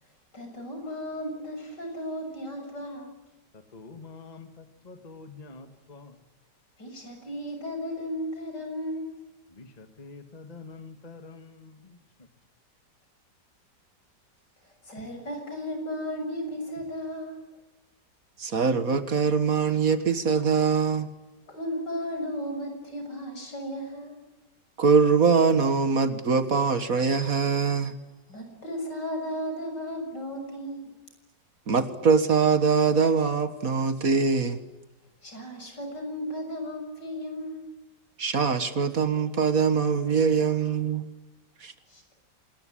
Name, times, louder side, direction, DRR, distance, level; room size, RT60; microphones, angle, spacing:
voice 1, 0.3-3.1 6.8-9.1 14.8-17.4 21.5-24.2 28.3-30.9 35.2-37.7 40.1-40.2 41.9-42.0, equal, 75° left, 4 dB, 7.6 m, -35 dB
voice 2, 3.7-6.1 9.6-11.9, left 4 dB, 25° left, 8 dB, 1.7 m, -46 dB
voice 3, 18.4-21.1 24.8-27.9 31.7-34.6 38.2-41.1 41.6-41.7, right 5 dB, 55° right, 10 dB, 2.0 m, -23 dB
26.5 x 20.5 x 10.0 m, 1.0 s
omnidirectional pair, 1.9 m